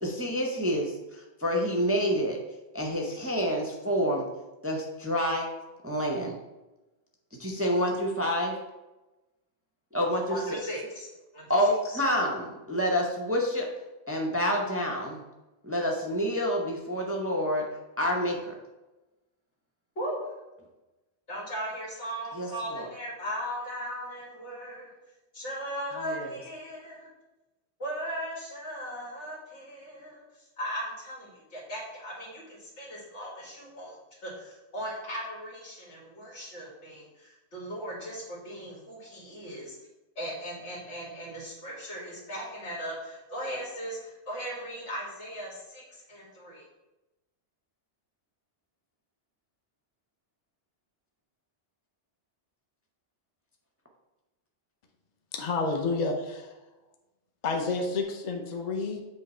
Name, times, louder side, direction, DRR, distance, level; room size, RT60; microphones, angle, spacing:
voice 1, 0.0-2.4 2.7-4.2 4.6-5.5 5.8-6.4 7.4-8.6 9.9-10.4 11.5-13.7 14.1-15.2 15.6-17.7 18.0-18.5 22.3-22.9 26.0-26.3, equal, 15° right, 0 dB, 0.6 m, -28 dB
voice 2, 10.3-11.1 11.3-11.4 11.9-12.0 20.0-20.3 21.3-24.9 25.3-27.1 27.8-30.2 30.6-33.9 34.2-39.8 40.2-46.6, equal, 85° left, -5 dB, 2.4 m, -38 dB
voice 3, 55.3-56.5 57.4-59.0, left 3 dB, 45° left, 1 dB, 0.8 m, -30 dB
7.8 x 3.1 x 4.3 m, 1.1 s
omnidirectional pair, 1.2 m